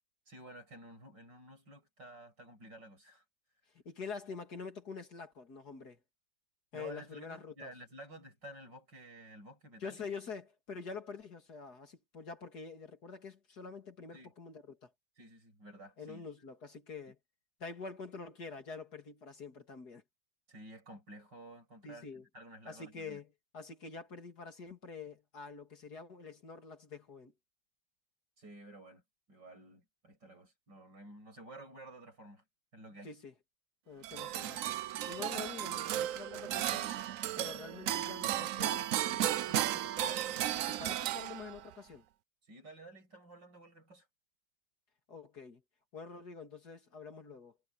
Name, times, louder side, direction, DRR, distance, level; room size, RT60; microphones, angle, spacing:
voice 1, 0.3-3.2 6.7-10.1 14.1-14.3 15.2-16.3 20.5-23.2 28.4-29.0 29.3-32.4 32.7-33.1 42.5-44.1, right 1 dB, 65° right, 8.5 m, -52 dB
voice 2, 3.8-6.0 6.7-7.7 9.8-14.9 16.0-17.2 17.6-20.0 21.8-22.2 22.7-23.3 23.5-27.3 33.0-33.3 33.9-34.8 35.1-36.9 37.4-40.3 40.7-42.0 45.1-45.6 45.9-47.5, left 5 dB, 55° left, 3.0 m, -46 dB
sound 1, 34.0-41.7, right 12 dB, 85° right, 0.7 m, -35 dB
omnidirectional pair, 2.1 m